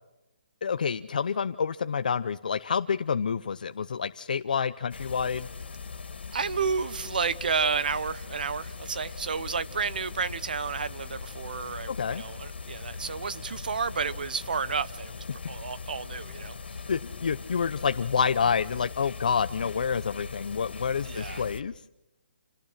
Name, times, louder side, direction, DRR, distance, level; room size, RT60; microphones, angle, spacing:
voice 1, 0.6-5.5 11.9-12.2 16.9-21.8, left 6 dB, 50° left, 0.7 m, -28 dB
sound 1, 4.9-21.6, left 5 dB, 85° left, 2.7 m, -40 dB
voice 2, 6.3-16.5 21.1-21.4, right 5 dB, 55° right, 1.1 m, -31 dB
29.0 x 18.5 x 5.8 m
hypercardioid pair, 175°, 6 cm